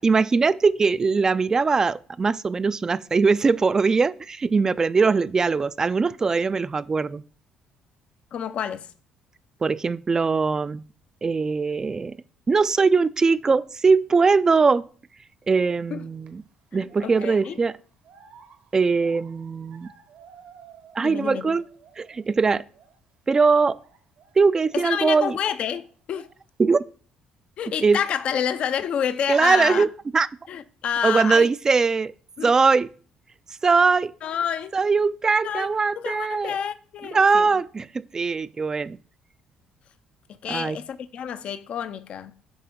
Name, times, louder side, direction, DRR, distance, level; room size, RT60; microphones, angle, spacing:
voice 1, 0.0-7.2 9.6-10.8 11.2-12.2 12.5-14.9 15.5-16.4 16.7-17.8 18.7-19.9 20.9-21.7 22.0-22.6 23.3-23.8 24.4-25.4 26.6-26.8 27.8-28.0 29.3-30.3 31.0-32.1 32.4-32.9 33.6-34.1 34.7-36.6 37.1-39.0 40.5-40.8, right 4 dB, 25° right, 0.3 m, -21 dB
voice 2, 8.3-8.9 15.9-16.0 17.0-17.6 21.0-21.6 24.7-26.3 27.6-29.9 30.5-31.5 32.4-32.5 34.2-34.7 35.4-37.5 40.4-42.3, left 8 dB, 55° left, 0.5 m, -28 dB
sound 1, 16.0-16.3 16.9-21.3 21.5-22.3 22.7-23.0 23.7-25.4 25.7-26.5, right 6 dB, 70° right, 1.1 m, -52 dB
10.0 x 3.4 x 3.7 m
cardioid pair, 95°, 2 cm